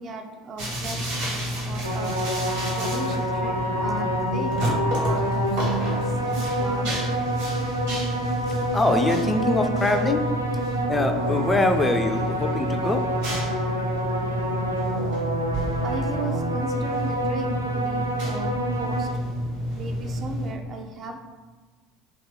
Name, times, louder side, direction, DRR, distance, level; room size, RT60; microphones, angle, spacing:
voice 1, 0.0-2.1 2.8-7.1 15.8-19.1 19.7-21.2, right 3 dB, 40° right, 4 dB, 0.5 m, -36 dB
sound 1, 0.6-20.5, equal, 75° right, 1.4 m, -29 dB
sound 2, 1.8-19.1, right 1 dB, 90° right, 0.3 m, -28 dB
Wind instrument woodwind instrument, 2.4-6.3, left 4 dB, 85° left, 0.5 m, -33 dB
voice 2, 8.7-10.2 10.9-13.0, left 2 dB, 15° left, 6 dB, 0.4 m, -23 dB
2.9 x 2.8 x 3.7 m, 1.4 s
figure-of-eight pair, 70°, 0 cm